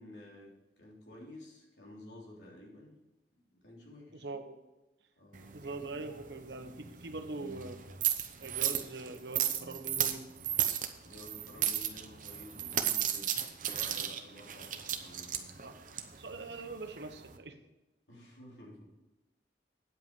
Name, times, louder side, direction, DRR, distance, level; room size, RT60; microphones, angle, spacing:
voice 1, 0.0-3.1 3.3-4.3 5.2-5.6 11.0-15.7 18.1-18.9, left 1 dB, 85° left, -2 dB, 3.5 m, -52 dB
voice 2, 4.1-4.6 5.5-7.8 8.4-10.3 15.6-15.7 16.2-17.6, right 3 dB, 75° right, 7 dB, 1.2 m, -42 dB
sound 1, 5.3-17.4, right 10 dB, 45° right, 0.9 m, -35 dB
9.4 x 8.3 x 5.3 m, 1.0 s
head